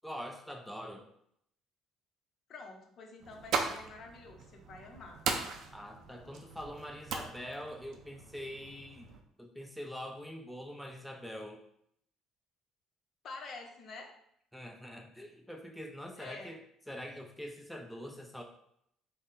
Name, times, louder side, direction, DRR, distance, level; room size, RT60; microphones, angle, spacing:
voice 1, 0.0-1.1 5.7-9.1 9.4-11.6 14.5-18.4, equal, ahead, 1 dB, 0.4 m, -44 dB
voice 2, 2.5-5.2 13.2-14.1 16.2-16.5, left 3 dB, 55° left, 3 dB, 0.7 m, -48 dB
sound 1, 3.2-9.2, right 5 dB, 65° right, 0.5 m, -39 dB
3.6 x 2.1 x 3.9 m, 0.72 s
cardioid pair, 90°, 0 cm